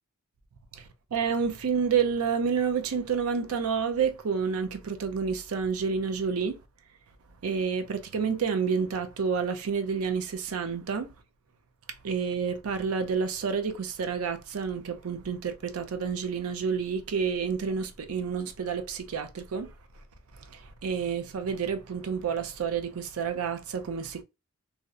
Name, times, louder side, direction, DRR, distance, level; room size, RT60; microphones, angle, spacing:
voice 1, 0.7-6.6 7.4-11.1 12.0-20.0 20.3-24.2, right 6 dB, 90° right, 0.5 m, -29 dB
2.7 x 2.0 x 2.3 m
head